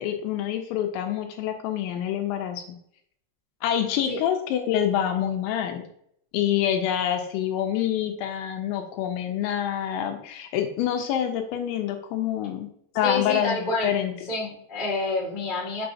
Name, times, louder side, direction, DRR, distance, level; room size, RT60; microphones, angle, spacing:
voice 1, 0.0-2.8 3.6-5.9 6.3-12.7 13.0-14.1, left 10 dB, 80° left, 5 dB, 2.8 m, -26 dB
voice 2, 13.0-14.0 14.3-15.8, left 3 dB, 40° left, -5 dB, 0.7 m, -28 dB
6.7 x 6.2 x 2.7 m, 0.70 s
omnidirectional pair, 5.6 m